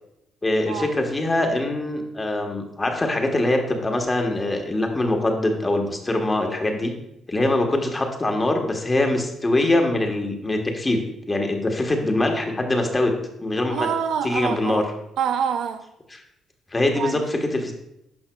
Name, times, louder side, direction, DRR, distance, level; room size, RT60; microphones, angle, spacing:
voice 1, 0.4-6.9 7.3-11.0 11.3-13.1 13.4-13.9 14.2-14.8 16.7-17.7, left 2 dB, 20° left, 3 dB, 1.2 m, -23 dB
voice 2, 13.7-14.9 15.2-15.8 17.0-17.4, right 7 dB, 80° right, 7 dB, 0.6 m, -26 dB
10.5 x 5.6 x 2.3 m, 0.84 s
cardioid pair, 90°, 0 cm